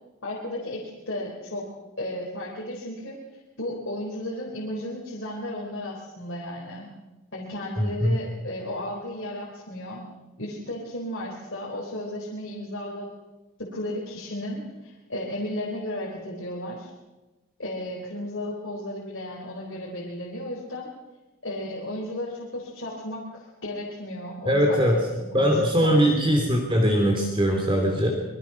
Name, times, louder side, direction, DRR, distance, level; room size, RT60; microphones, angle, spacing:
voice 1, 0.2-1.7 2.0-3.2 3.6-6.9 7.3-10.0 10.4-13.1 13.6-16.9 17.6-20.9 21.4-25.9, left 1 dB, 60° left, -4 dB, 4.3 m, -34 dB
voice 2, 7.8-8.2 24.4-25.0 25.3-28.1, equal, 25° right, 1 dB, 3.3 m, -21 dB
26.5 x 22.5 x 6.1 m, 1.1 s
head